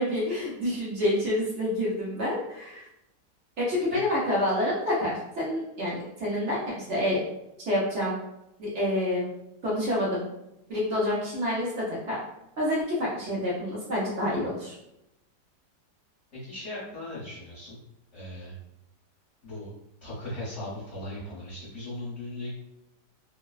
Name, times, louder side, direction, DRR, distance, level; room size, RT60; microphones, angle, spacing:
voice 1, 0.0-2.9 3.6-7.2 7.6-8.2 8.6-9.3 9.6-10.2 10.7-12.2 12.6-14.7, left 1 dB, 60° right, -6 dB, 0.7 m, -28 dB
voice 2, 16.3-17.8 18.1-18.5 19.4-19.7 20.0-22.7, left 1 dB, 45° left, -10 dB, 1.1 m, -38 dB
3.1 x 2.1 x 2.3 m, 0.87 s
omnidirectional pair, 1.9 m